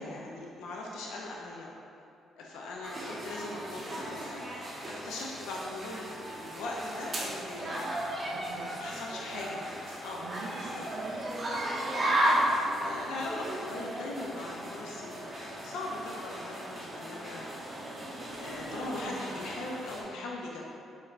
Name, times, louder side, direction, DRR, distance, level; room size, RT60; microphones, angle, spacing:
voice 1, 0.0-1.7 2.4-7.9 8.8-10.8 12.2-17.5 18.2-20.6, left 2 dB, 90° left, -2 dB, 0.4 m, -40 dB
sound 1, 2.8-20.0, right 1 dB, 35° right, 0.7 m, -35 dB
voice 2, 8.3-9.1 10.2-11.6, right 4 dB, 75° right, 2 dB, 0.3 m, -46 dB
4.0 x 3.2 x 2.4 m, 2.6 s
cardioid pair, 90°, 0 cm